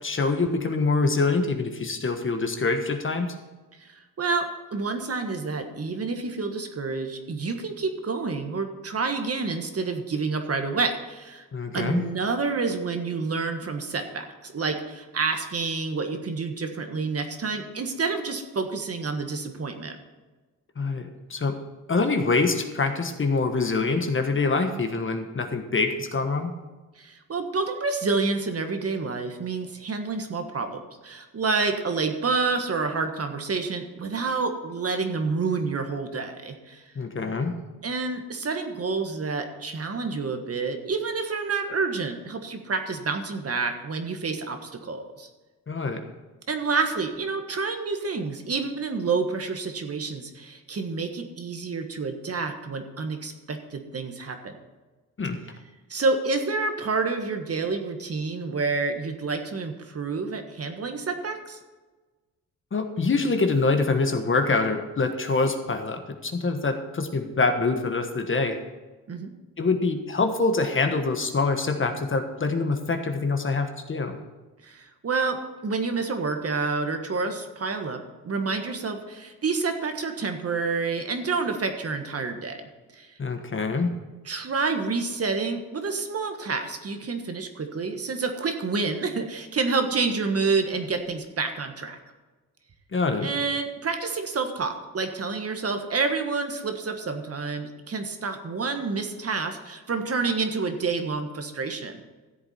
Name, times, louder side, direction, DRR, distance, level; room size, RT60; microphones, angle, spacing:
voice 1, 0.0-3.3 11.5-12.0 20.8-21.6 21.9-26.5 36.9-37.5 45.7-46.0 55.2-55.4 62.7-68.6 69.6-74.2 83.2-83.9 92.9-93.3, left 3 dB, 35° left, 6 dB, 1.4 m, -25 dB
voice 2, 3.8-4.5 4.7-11.5 11.7-20.0 27.0-36.8 37.8-45.3 46.5-54.5 55.9-61.6 69.1-69.3 74.6-75.4 75.6-82.6 82.9-83.1 84.2-92.0 93.2-102.0, right 4 dB, 40° right, 6 dB, 1.5 m, -28 dB
13.5 x 7.9 x 4.4 m, 1.2 s
cardioid pair, 85°, 36 cm